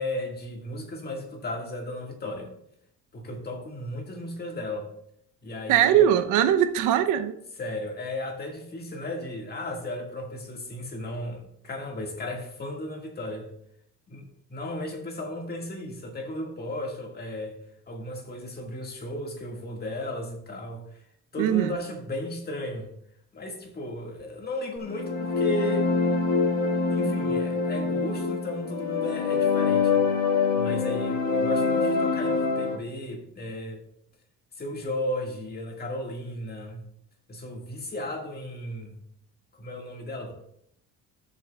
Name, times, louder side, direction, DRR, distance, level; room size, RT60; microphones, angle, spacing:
voice 1, 0.0-2.5 3.1-4.9 5.4-6.1 7.6-13.5 14.1-17.6 17.9-21.0 21.3-22.9 23.3-25.9 26.9-33.8 34.6-36.8 37.3-39.0 39.5-40.3, left 1 dB, 30° left, 1.8 m, -35 dB
voice 2, 5.7-7.4 21.4-21.7, right 10 dB, 85° right, 0.7 m, -21 dB
sound 1, 24.8-32.8, left 4 dB, 70° left, 1.7 m, -25 dB
13.0 x 7.0 x 2.3 m
cardioid pair, 120°, 30 cm